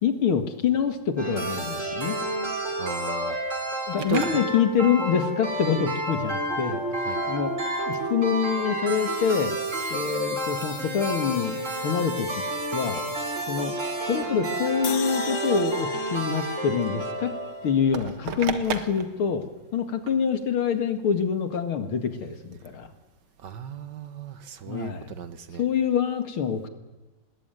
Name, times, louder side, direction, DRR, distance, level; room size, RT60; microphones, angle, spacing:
voice 1, 0.0-2.2 3.9-6.8 7.2-7.6 7.9-9.6 9.9-12.3 12.7-13.0 13.5-13.7 14.1-17.3 17.6-19.5 19.7-22.9 24.7-25.1 25.6-26.7, left 7 dB, 80° left, 8 dB, 2.8 m, -26 dB
sound 1, 1.2-17.8, right 1 dB, 35° right, 3.9 m, -30 dB
voice 2, 2.8-3.4 4.1-4.4 7.0-7.2 23.4-25.6, right 8 dB, 60° right, 12 dB, 1.7 m, -35 dB
sound 2, 3.9-21.5, right 7 dB, 75° right, 2.4 m, -42 dB
sound 3, 14.8-18.1, left 8 dB, 50° left, 1.7 m, -38 dB
25.5 x 20.5 x 9.3 m, 1.2 s
omnidirectional pair, 2.3 m